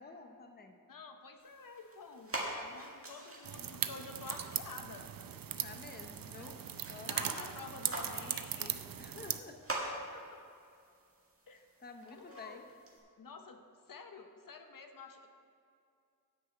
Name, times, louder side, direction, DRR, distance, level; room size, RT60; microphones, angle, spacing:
voice 1, 0.0-0.8 5.6-6.6 6.9-7.5 9.0-9.6 11.8-12.6, left 4 dB, 30° left, 5 dB, 0.7 m, -51 dB
voice 2, 0.9-5.1 6.3-6.6 7.1-9.0 9.9-10.3 11.5-11.6 12.1-12.6 13.2-15.3, left 4 dB, 70° left, 5 dB, 0.8 m, -50 dB
sound 1, 1.4-13.0, right 2 dB, 40° right, 1.7 m, -46 dB
sound 2, 3.4-9.4, right 9 dB, 75° right, 0.5 m, -39 dB
10.0 x 4.8 x 7.9 m, 2.4 s
wide cardioid pair, 100°, 35 cm